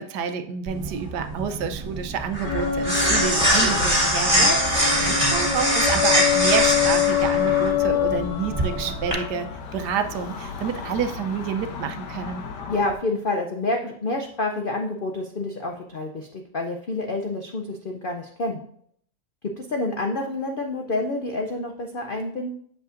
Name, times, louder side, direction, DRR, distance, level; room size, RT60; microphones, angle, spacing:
voice 1, 0.0-12.4, right 6 dB, 75° right, 7 dB, 1.3 m, -29 dB
sound 1, 0.7-9.1, equal, 20° right, 3.3 m, -23 dB
sound 2, 2.4-13.0, left 9 dB, 85° left, 1.5 m, -27 dB
voice 2, 12.7-18.7 19.4-22.5, left 2 dB, 65° left, 3 dB, 0.5 m, -28 dB
8.1 x 7.4 x 2.5 m, 0.64 s
omnidirectional pair, 1.8 m